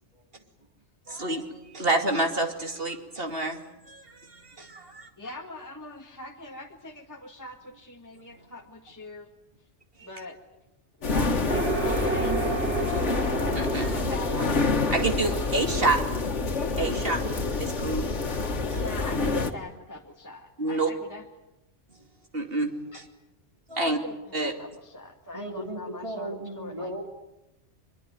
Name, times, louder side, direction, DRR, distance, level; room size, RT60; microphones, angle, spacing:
voice 1, 0.1-0.4 1.1-1.2 8.4-8.5 25.3-27.1, right 1 dB, 25° right, 3 dB, 3.2 m, -37 dB
voice 2, 1.1-5.1 10.0-10.1 13.5-13.9 14.9-16.0 16.8-18.1 18.7-18.8 20.6-20.9 22.3-23.1 23.7-24.0 24.3-24.5, right 2 dB, 55° right, 5 dB, 2.9 m, -28 dB
voice 3, 5.2-9.3 10.0-10.4 11.0-12.4 12.7-13.2 13.8-14.6 15.1-15.4 18.8-21.2 22.9-23.0 23.8-27.1, left 2 dB, 15° left, 1 dB, 1.9 m, -41 dB
sound 1, 11.0-19.5, left 3 dB, 80° left, 2.0 m, -27 dB
sound 2, 11.5-17.1, right 2 dB, 70° right, 5.5 m, -32 dB
24.0 x 22.5 x 9.3 m, 0.92 s
omnidirectional pair, 1.2 m